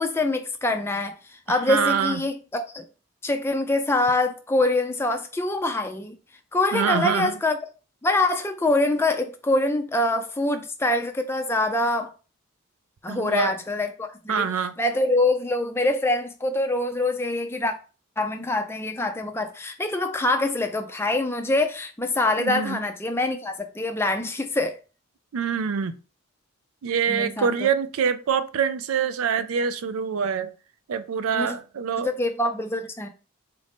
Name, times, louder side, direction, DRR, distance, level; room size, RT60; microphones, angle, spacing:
voice 1, 0.0-2.8 3.2-6.1 6.5-7.6 8.0-12.1 13.0-17.7 18.2-24.8 27.1-27.7 31.3-31.5 32.0-33.1, left 2 dB, 10° left, 0.4 m, -25 dB
voice 2, 1.5-2.2 6.7-7.4 13.1-13.5 14.3-14.7 22.4-22.8 25.3-26.0 26.8-30.5 30.9-32.1, right 6 dB, 75° right, 0.4 m, -25 dB
4.1 x 2.6 x 3.4 m
head